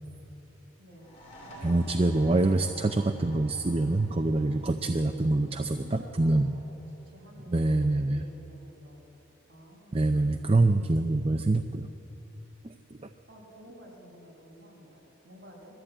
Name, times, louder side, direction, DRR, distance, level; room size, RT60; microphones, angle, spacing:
voice 1, 0.8-1.1 1.4-2.9 4.9-5.2 5.8-6.6 7.0-9.0 9.5-10.7 13.3-15.7, equal, 50° right, -2 dB, 5.9 m, -52 dB
sound 1, 0.9-8.3, left 1 dB, 35° left, 3.9 m, -52 dB
voice 2, 1.6-6.5 7.5-8.2 9.9-11.9 12.6-12.7 13.0-13.1, right 2 dB, 30° right, 7 dB, 0.5 m, -25 dB
22.0 x 14.0 x 8.8 m, 3.0 s
head